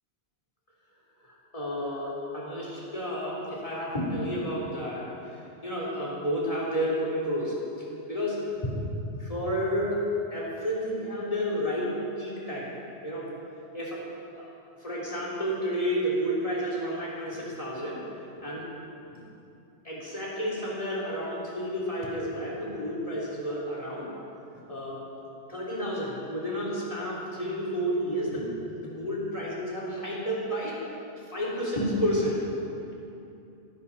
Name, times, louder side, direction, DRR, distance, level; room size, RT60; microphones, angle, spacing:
voice 1, 1.2-10.0 10.3-12.8 13.0-13.3 13.7-14.0 14.4-14.5 14.8-18.0 18.4-18.7 19.8-24.1 24.7-25.0 25.5-28.5 28.8-30.8 31.2-32.4, equal, 30° left, -6 dB, 3.7 m, -31 dB
17.5 x 14.5 x 4.2 m, 2.8 s
omnidirectional pair, 1.2 m